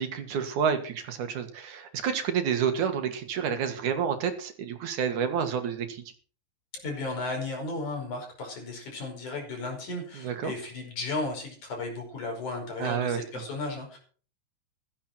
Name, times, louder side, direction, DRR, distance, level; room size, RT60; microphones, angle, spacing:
voice 1, 0.0-6.0 10.1-10.5 12.8-13.2, right 7 dB, 85° right, 7 dB, 3.3 m, -29 dB
voice 2, 6.7-14.0, left 3 dB, 85° left, 1 dB, 6.6 m, -35 dB
15.5 x 13.0 x 4.5 m, 0.43 s
omnidirectional pair, 3.4 m